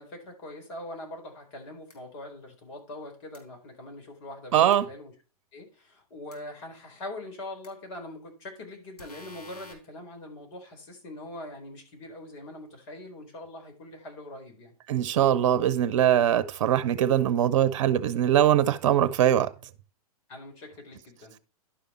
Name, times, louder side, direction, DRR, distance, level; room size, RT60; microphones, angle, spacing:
voice 1, 0.0-5.1 5.5-14.7 20.3-21.4, left 1 dB, 45° left, 4.3 m, -42 dB
sound 1, 1.9-2.0 3.3-3.4 4.7-4.8 6.3-6.4 7.6-7.7 9.0-9.7, left 3 dB, 80° left, 3.5 m, -48 dB
voice 2, 4.5-4.9 14.9-19.5, right 10 dB, 55° right, 0.9 m, -22 dB
11.5 x 5.2 x 4.4 m
figure-of-eight pair, 110°, 20 cm